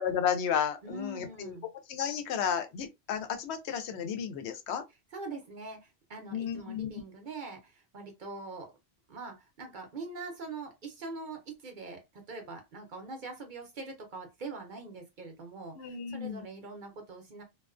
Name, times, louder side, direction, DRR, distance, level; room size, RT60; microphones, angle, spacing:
voice 1, 0.0-1.5 1.9-4.8 6.3-6.9 15.8-16.5, left 8 dB, 80° left, 0.8 m, -32 dB
voice 2, 0.8-1.7 5.1-8.7 9.1-17.4, right 3 dB, 55° right, 0.8 m, -43 dB
2.3 x 2.2 x 2.4 m
omnidirectional pair, 1.1 m